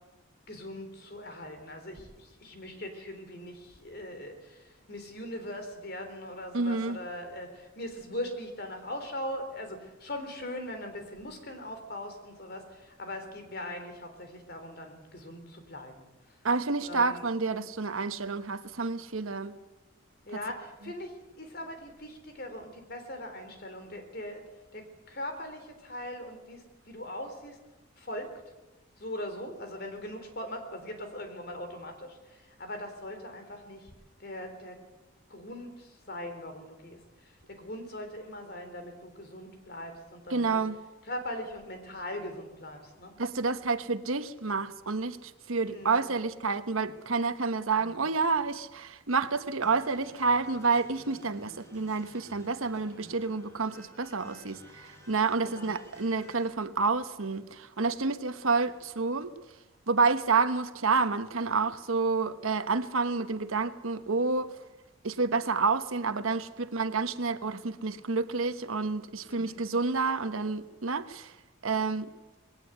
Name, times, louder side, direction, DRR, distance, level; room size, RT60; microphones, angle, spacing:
voice 1, 0.5-16.1 16.8-17.2 20.2-24.4 24.7-27.6 28.0-28.3 29.0-33.9 34.2-34.8 35.3-37.0 37.5-40.6 41.1-43.1 45.6-46.0 47.7-48.2 55.4-55.7 69.3-69.6, left 1 dB, 50° left, 3.6 m, -40 dB
voice 2, 6.5-7.0 16.4-19.5 20.3-20.4 40.3-40.8 43.2-59.3 59.9-64.5 65.0-71.3 71.6-72.1, right 4 dB, 85° right, 1.1 m, -29 dB
sound 1, 49.6-56.5, equal, 15° left, 4.5 m, -55 dB
20.5 x 17.5 x 8.2 m
head